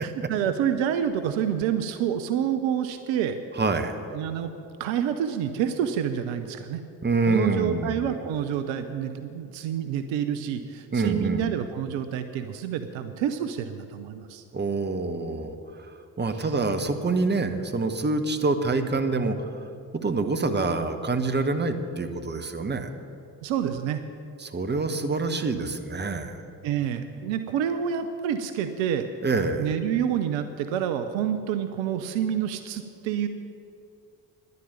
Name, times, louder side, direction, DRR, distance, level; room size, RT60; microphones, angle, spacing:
voice 1, 0.0-3.4 4.1-4.5 4.8-6.8 7.3-14.4 16.3-16.4 23.4-24.0 26.6-29.1 29.6-33.3, right 9 dB, 65° right, 9 dB, 0.7 m, -28 dB
voice 2, 3.6-4.0 7.0-8.1 10.9-11.4 14.5-15.6 16.2-19.4 20.0-22.9 24.4-26.4 29.2-29.7, right 3 dB, 20° right, 7 dB, 1.1 m, -26 dB
10.5 x 8.0 x 8.9 m, 2.5 s
figure-of-eight pair, 40°, 50 cm